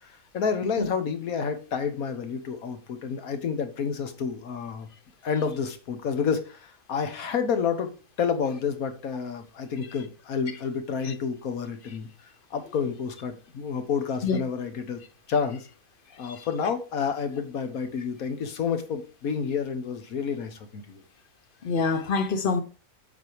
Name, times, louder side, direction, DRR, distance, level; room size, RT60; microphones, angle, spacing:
voice 1, 0.0-4.9 5.2-7.9 8.2-12.1 12.5-15.0 15.3-15.7 16.2-21.0, left 6 dB, 65° left, 1.5 m, -29 dB
voice 2, 21.6-22.6, left 4 dB, 45° left, 0.8 m, -26 dB
8.1 x 4.6 x 4.7 m
omnidirectional pair, 1.6 m